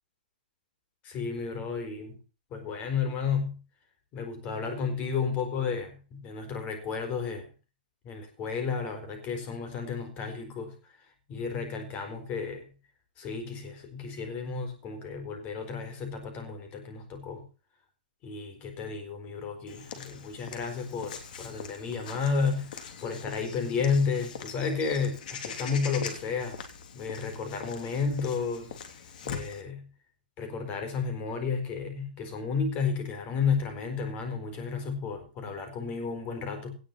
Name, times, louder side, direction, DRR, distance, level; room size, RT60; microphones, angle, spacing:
voice 1, 1.0-2.2 2.5-3.6 4.1-7.5 8.0-10.8 11.3-12.7 13.2-17.4 18.2-22.7 23.0-26.6 26.9-28.8 29.2-29.9 30.4-36.8, left 5 dB, 25° left, 4.4 m, -32 dB
Walk footsteps / Bird vocalization bird call bird song, 19.7-29.6, left 6 dB, 55° left, 3.3 m, -42 dB
18.0 x 6.2 x 5.8 m
hypercardioid pair, 155°, 5 cm